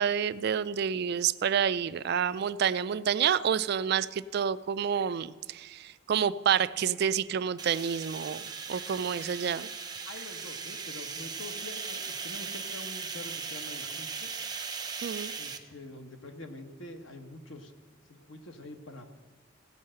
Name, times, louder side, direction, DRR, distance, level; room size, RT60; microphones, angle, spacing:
voice 1, 0.0-8.4 8.7-9.7 15.0-15.3, right 8 dB, 55° right, 15 dB, 0.3 m, -28 dB
sound 1, 7.6-15.6, right 5 dB, 20° right, 0.8 m, -38 dB
voice 2, 10.0-14.3 15.4-17.7 18.1-19.1, left 2 dB, 85° left, 5 dB, 1.3 m, -45 dB
16.5 x 5.5 x 7.6 m, 1.3 s
head